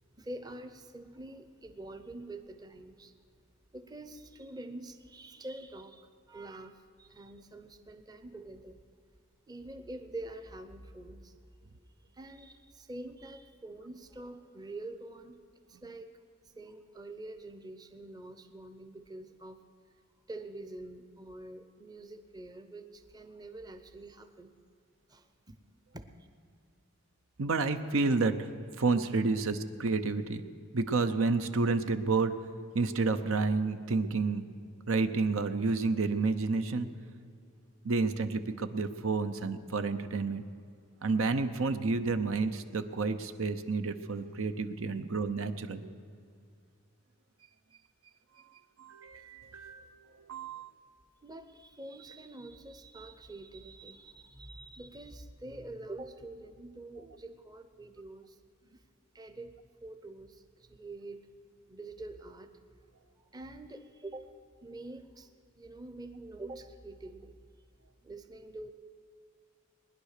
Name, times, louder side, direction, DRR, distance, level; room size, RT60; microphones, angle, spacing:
voice 1, 0.1-3.1 3.7-8.8 9.5-11.4 12.0-15.4 15.7-16.1 16.4-19.6 20.3-24.5 25.1-25.6 25.9-26.1 51.2-58.8 59.1-59.5 59.8-61.2 61.7-62.5 63.3-64.3 64.6-65.3 65.6-67.3 68.0-68.7, right 2 dB, 20° right, 8 dB, 0.7 m, -46 dB
voice 2, 27.4-28.5 28.8-30.4 30.7-32.3 32.7-34.4 34.9-36.9 37.8-40.4 41.0-45.8 48.8-49.9 50.3-50.7, right 3 dB, 75° right, 9 dB, 0.8 m, -30 dB
20.0 x 10.5 x 6.6 m, 2.4 s
head